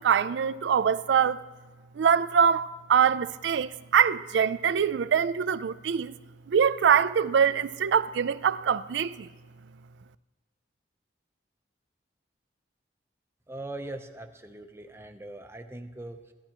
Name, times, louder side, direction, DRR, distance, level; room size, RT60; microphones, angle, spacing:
voice 1, 0.0-1.4 2.0-6.1 6.5-9.3, right 7 dB, 75° right, 0.4 m, -24 dB
voice 2, 13.5-16.3, right 2 dB, 15° right, 0.6 m, -41 dB
16.0 x 12.0 x 2.9 m
head